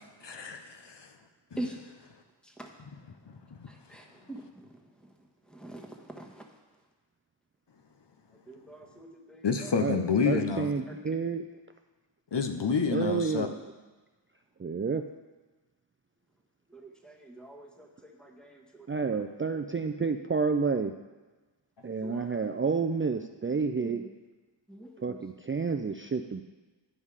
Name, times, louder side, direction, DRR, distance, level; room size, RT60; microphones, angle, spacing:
voice 1, 0.2-1.1 3.3-3.4 9.4-10.7 12.3-13.5, left 5 dB, 65° left, 6 dB, 0.8 m, -29 dB
voice 2, 3.7-4.7 5.5-6.5 8.5-9.7 10.4-10.5 10.9-11.0 16.7-19.2 22.0-22.4 23.8-24.1 24.7-25.2, right 1 dB, ahead, 1 dB, 1.4 m, -44 dB
voice 3, 9.8-11.4 12.9-13.7 14.6-15.0 18.9-20.9 21.8-24.0 25.0-26.4, right 5 dB, 30° right, 6 dB, 0.4 m, -30 dB
11.0 x 5.5 x 4.8 m, 1.2 s
wide cardioid pair, 40°, 45 cm